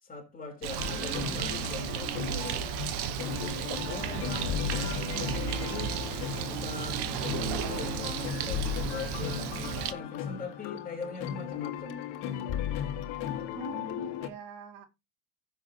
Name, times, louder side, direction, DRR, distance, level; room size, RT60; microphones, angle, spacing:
voice 1, 0.0-2.6 3.4-5.3 5.6-5.9 6.5-7.1 7.6-9.5 9.8-12.1, left 3 dB, 15° left, 3.7 m, -41 dB
Bird, 0.6-9.9, right 9 dB, 55° right, 1.2 m, -34 dB
sound 1, 0.8-14.3, left 10 dB, 55° left, 2.0 m, -36 dB
Sink (filling or washing), 3.1-4.7 5.9-8.1, left 1 dB, ahead, 1.9 m, -53 dB
voice 2, 13.5-14.9, right 7 dB, 80° right, 2.4 m, -44 dB
15.5 x 7.1 x 2.8 m
cardioid pair, 150°, 47 cm